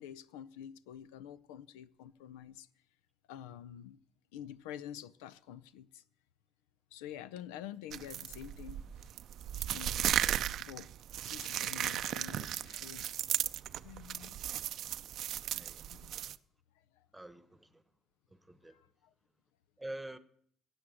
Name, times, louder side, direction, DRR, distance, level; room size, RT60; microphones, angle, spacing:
voice 1, 0.0-2.7 3.3-4.0 4.3-6.0 6.9-8.8 9.7-10.1 10.6-10.9 11.3-13.1 13.8-14.4 15.9-16.1 17.0-17.1 18.7-19.1, left 10 dB, 90° left, 0.5 m, -48 dB
sound 1, 7.9-16.4, right 11 dB, 65° right, 0.5 m, -36 dB
voice 2, 15.4-15.8 17.1-17.8 18.3-18.8 19.8-20.2, right 1 dB, 10° right, 1.2 m, -47 dB
15.5 x 8.0 x 7.7 m
supercardioid pair, 70°, 0 cm